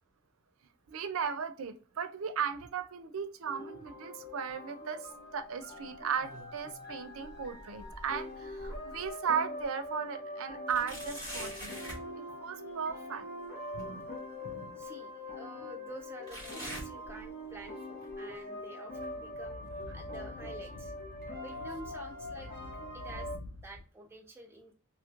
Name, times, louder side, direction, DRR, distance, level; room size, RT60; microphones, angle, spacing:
voice 1, 0.9-11.8 12.4-13.2 13.7-14.1 14.4-14.7, right 7 dB, 70° right, 0.4 m, -36 dB
sound 1, 3.4-23.4, left 1 dB, 45° left, 1.0 m, -43 dB
sound 2, 5.9-6.8 7.2-9.1 9.6-9.7 10.7-12.1 13.8-13.9 14.8-14.9 16.3-17.7 18.0-18.4 19.0-19.1 20.0-20.1, equal, 20° left, 1.3 m, -45 dB
voice 2, 14.8-20.9 21.4-22.5 22.9-23.3 23.6-24.7, right 1 dB, 10° right, 0.6 m, -49 dB
Speech / Wind, 18.9-23.8, left 2 dB, 85° left, 0.4 m, -48 dB
3.0 x 2.9 x 2.4 m
head